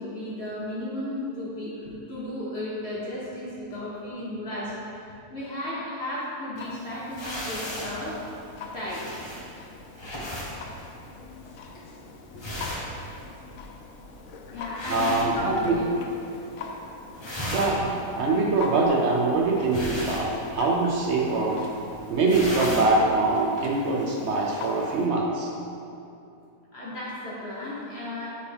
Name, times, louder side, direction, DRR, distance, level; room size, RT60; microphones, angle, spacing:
voice 1, 0.0-4.9 5.3-8.2 8.7-9.2 10.0-10.1 12.3-12.5 14.5-15.8 16.6-16.7 26.7-28.3, left 1 dB, 45° left, -7 dB, 1.1 m, -34 dB
Clock, 6.6-25.1, left 4 dB, 65° left, 0.8 m, -42 dB
sound 1, 7.1-16.1 16.3-16.8 17.0-23.0, equal, 25° left, 0.6 m, -36 dB
voice 2, 14.9-15.7 17.4-21.6 22.1-25.5, right 3 dB, 70° right, -1 dB, 0.6 m, -24 dB
6.5 x 4.6 x 3.5 m, 2.7 s
omnidirectional pair, 1.7 m